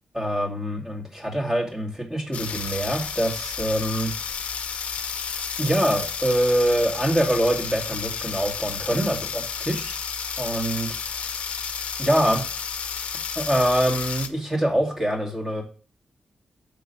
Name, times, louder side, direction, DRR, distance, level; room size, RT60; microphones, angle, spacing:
voice 1, 0.1-4.1 5.6-10.0 10.4-11.0 12.0-12.5 13.4-15.6, right 1 dB, 20° right, 0 dB, 2.2 m, -24 dB
sound 1, 2.3-14.3, left 6 dB, 70° left, 0.6 m, -31 dB
6.6 x 3.7 x 5.6 m, 0.38 s
cardioid pair, 70°, 2 cm